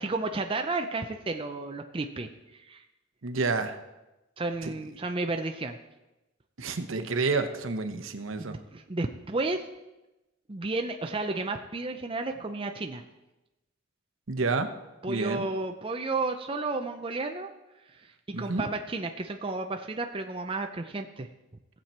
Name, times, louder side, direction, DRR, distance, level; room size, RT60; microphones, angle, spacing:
voice 1, 0.0-2.3 2.7-2.8 4.4-5.8 8.4-9.6 10.5-13.0 15.0-17.5 18.0-21.3, right 3 dB, 25° right, 5 dB, 0.5 m, -32 dB
voice 2, 3.2-3.8 4.6-4.7 6.6-8.6 14.3-14.7 15.1-15.5 18.3-18.6, right 4 dB, 75° right, 8 dB, 0.9 m, -29 dB
16.0 x 7.6 x 4.3 m, 1.0 s
head